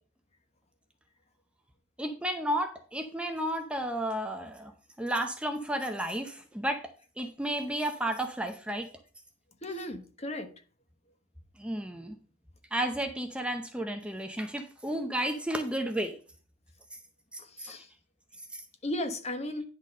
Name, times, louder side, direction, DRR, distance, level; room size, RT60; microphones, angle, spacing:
voice 1, 2.0-4.7 5.0-6.8 7.2-8.9 11.6-12.2 12.7-16.1 17.3-17.8 18.5-18.6, right 1 dB, 5° right, 0.6 m, -32 dB
voice 2, 9.6-10.5 17.4-17.9 18.8-19.6, left 1 dB, 35° left, 1.1 m, -35 dB
10.0 x 4.0 x 6.4 m
head